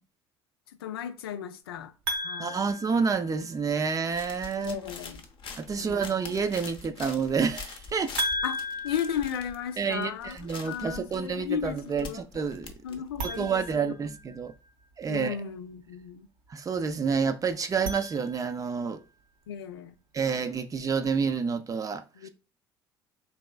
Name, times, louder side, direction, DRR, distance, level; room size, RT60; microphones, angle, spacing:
voice 1, 0.8-1.9 2.2-2.7 4.6-5.2 5.8-6.1 8.4-8.6 8.8-10.4 10.6-12.2 12.8-14.0 15.1-16.3 19.5-19.9 22.2-22.3, left 9 dB, 75° left, 0.4 m, -35 dB
sound 1, 2.1-3.8 8.2-10.2 13.1-14.7 17.6-18.8, equal, 70° right, 0.8 m, -36 dB
voice 2, 2.4-4.8 5.6-8.1 9.8-14.5 15.0-15.4 16.5-19.0 20.1-22.3, right 5 dB, 25° right, 0.5 m, -29 dB
sound 2, 4.1-13.8, left 5 dB, 40° left, 0.7 m, -44 dB
4.1 x 3.0 x 2.2 m
figure-of-eight pair, 60°, 13 cm